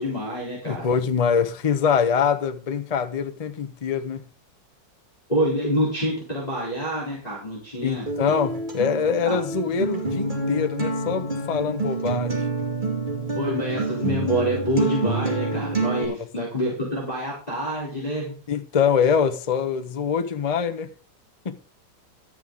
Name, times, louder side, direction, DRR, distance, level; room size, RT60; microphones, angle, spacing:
voice 1, 0.0-0.9 5.3-8.1 9.2-9.4 13.4-18.3, equal, 20° left, 3.7 m, -26 dB
voice 2, 0.6-4.2 7.8-12.5 16.0-16.1 18.5-20.9 21.4-21.6, left 6 dB, 90° left, 0.3 m, -24 dB
Acoustic guitar, 8.1-16.0, right 3 dB, 25° right, 2.7 m, -27 dB
12.5 x 9.1 x 3.8 m
omnidirectional pair, 2.0 m